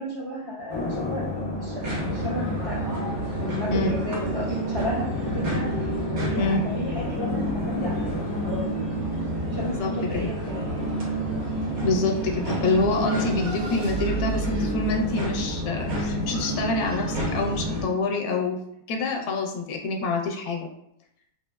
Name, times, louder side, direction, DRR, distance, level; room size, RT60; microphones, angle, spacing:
voice 1, 0.0-8.6 9.5-11.0, left 1 dB, 20° left, -7 dB, 0.7 m, -33 dB
sound 1, 0.7-17.5, left 2 dB, 45° left, 1.3 m, -36 dB
sound 2, 1.8-17.8, right 1 dB, 70° right, 1.3 m, -29 dB
voice 2, 9.8-10.3 11.8-18.6 18.9-20.7, left 3 dB, 75° left, 1 dB, 1.1 m, -26 dB
sound 3, 12.5-17.0, right 2 dB, 85° right, 0.5 m, -35 dB
5.6 x 2.0 x 2.2 m, 0.75 s
omnidirectional pair, 1.6 m